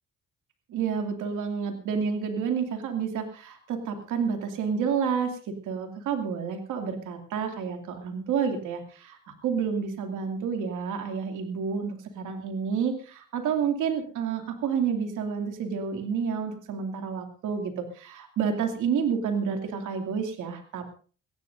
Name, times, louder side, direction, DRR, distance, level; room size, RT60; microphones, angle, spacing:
voice 1, 0.7-20.9, right 6 dB, 80° right, 4 dB, 2.6 m, -29 dB
22.5 x 17.0 x 2.7 m, 0.40 s
cardioid pair, 90°, 30 cm